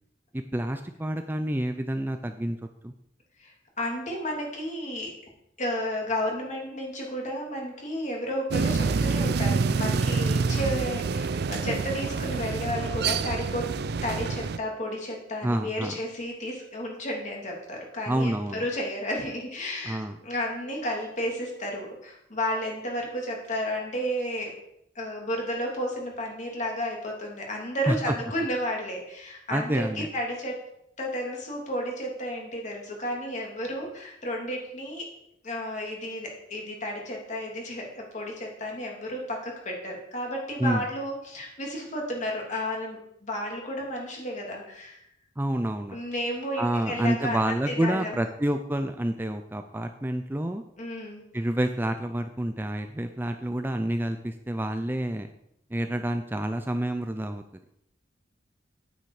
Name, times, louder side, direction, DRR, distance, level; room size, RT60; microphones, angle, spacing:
voice 1, 0.3-2.6 2.8-2.9 15.4-16.0 18.1-18.6 19.9-20.2 27.9-28.1 29.5-30.1 40.6-40.8 45.4-46.0 46.6-50.6 51.3-55.3 55.7-57.4, right 1 dB, 10° right, 7 dB, 0.5 m, -28 dB
voice 2, 3.4-5.1 5.6-13.8 14.0-24.5 24.9-30.6 31.0-35.1 35.4-45.0 45.9-48.2 50.8-51.2, equal, 40° left, 0 dB, 2.9 m, -32 dB
sound 1, 8.5-14.6, right 4 dB, 60° right, 0.5 m, -27 dB
9.5 x 9.3 x 4.9 m, 0.78 s
head